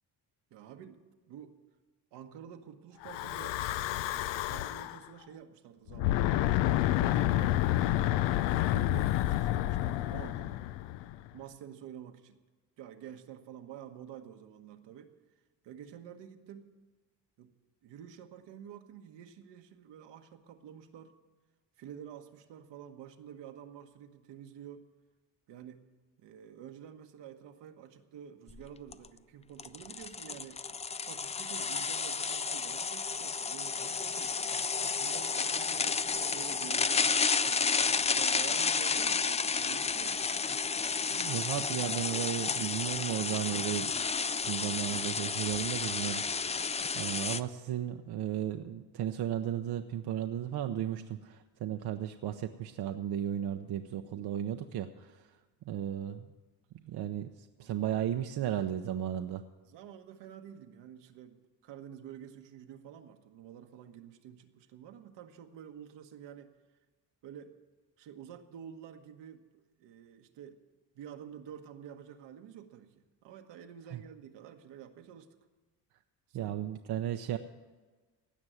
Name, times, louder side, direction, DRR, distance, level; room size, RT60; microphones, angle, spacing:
voice 1, 0.5-1.0 1.3-1.5 2.1-6.5 7.0-7.6 8.7-10.6 11.3-12.4 12.8-15.1 15.6-16.7 17.4-17.5 17.8-21.1 21.8-24.9 25.5-25.8 26.2-30.6 31.0-34.3 34.9-37.6 38.1-40.5 57.6-57.8 59.6-61.4 61.6-66.5 67.2-67.5 68.0-69.4 69.8-70.6 70.9-72.9 73.2-75.3 76.3-76.6, right 9 dB, 80° right, 5 dB, 1.3 m, -49 dB
Breathing / Wind, 3.0-5.0 5.9-11.3, left 14 dB, 90° left, 0.6 m, -29 dB
sound 1, 28.5-28.6 28.9-29.1 29.6-47.4, left 5 dB, 15° left, 0.3 m, -31 dB
voice 2, 41.1-43.9 44.4-46.6 46.9-55.2 55.7-56.2 56.8-57.3 57.6-59.4 73.9-74.0 76.3-77.4, right 11 dB, 65° right, 6 dB, 0.8 m, -35 dB
16.5 x 6.1 x 9.2 m, 1.3 s
cardioid pair, 80°, 42 cm